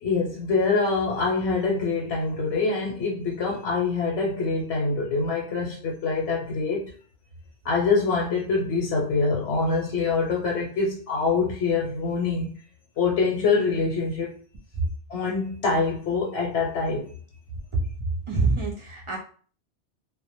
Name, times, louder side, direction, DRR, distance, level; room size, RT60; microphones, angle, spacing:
voice 1, 0.0-6.8 7.6-12.5 13.0-14.3 15.1-17.1, left 4 dB, 85° left, -2 dB, 0.9 m, -25 dB
voice 2, 17.5-19.2, right 3 dB, 55° right, -3 dB, 0.3 m, -26 dB
2.1 x 2.1 x 2.8 m, 0.44 s
omnidirectional pair, 1.2 m